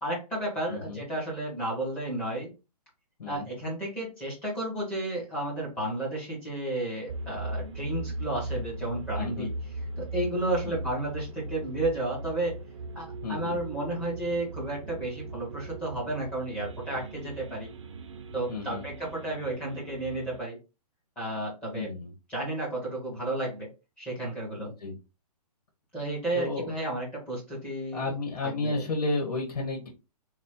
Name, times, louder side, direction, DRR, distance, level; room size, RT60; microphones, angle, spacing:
voice 1, 0.0-2.5 3.3-9.5 10.0-12.5 12.9-17.7 18.3-20.6 21.2-21.9 22.3-23.7 24.0-24.7 25.9-28.1 28.4-28.8, right 1 dB, 5° left, -5 dB, 0.7 m, -32 dB
voice 2, 0.7-1.0 3.2-3.5 9.1-9.5 10.6-10.8 13.2-13.6 18.5-18.8 21.7-22.1 24.6-25.0 26.3-26.7 27.9-29.9, left 3 dB, 85° left, -1 dB, 1.4 m, -32 dB
sound 1, 7.1-20.4, right 2 dB, 50° right, 0.5 m, -39 dB
3.2 x 2.0 x 4.1 m, 0.29 s
hypercardioid pair, 175°, 20 cm